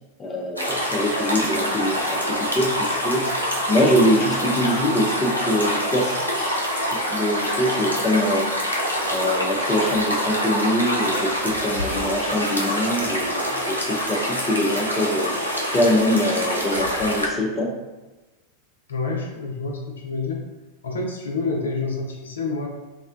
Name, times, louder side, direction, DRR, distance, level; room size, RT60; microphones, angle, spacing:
voice 1, 0.2-3.3 3.7-6.6 6.9-8.7 9.1-15.4 15.7-17.7, left 1 dB, 20° left, 0 dB, 0.5 m, -24 dB
sound 1, 0.6-17.3, equal, 90° right, 0.5 m, -25 dB
voice 2, 18.9-20.4 20.8-22.7, left 3 dB, 70° left, 0 dB, 0.5 m, -28 dB
3.5 x 2.1 x 2.5 m, 1.1 s
figure-of-eight pair, 90°, 0 cm